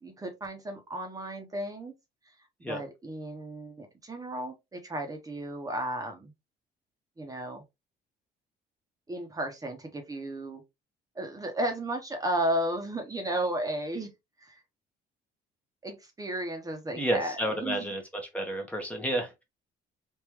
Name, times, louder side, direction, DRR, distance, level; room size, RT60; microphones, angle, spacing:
voice 1, 0.0-1.9 2.7-6.3 7.2-7.6 9.1-10.6 11.1-14.1 14.4-14.6 15.8-17.8, right 1 dB, 20° right, 0.9 m, -34 dB
voice 2, 17.0-18.0 18.3-19.4, right 1 dB, 10° left, 0.9 m, -30 dB
3.6 x 2.5 x 2.9 m
cardioid pair, 110°, 17 cm